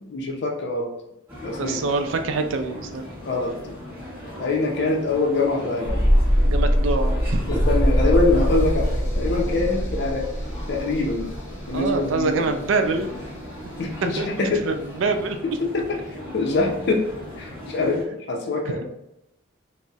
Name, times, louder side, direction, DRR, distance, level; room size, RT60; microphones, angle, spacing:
voice 1, 0.0-0.9 1.4-1.8 3.2-3.5 4.4-6.0 7.5-10.3 10.7-11.3 11.7-12.5 13.8-14.6 15.4-17.1 17.4-18.9, left 3 dB, 60° left, 0 dB, 0.5 m, -24 dB
sound 1, 1.3-18.0, left 1 dB, 10° right, 0.9 m, -38 dB
voice 2, 1.6-3.1 6.4-7.4 11.7-13.1 14.2-15.4, right 3 dB, 75° right, 7 dB, 0.4 m, -25 dB
sound 2, 5.9-12.7 13.0-13.1, equal, 15° left, 0.7 m, -22 dB
3.9 x 2.0 x 2.3 m, 0.86 s
head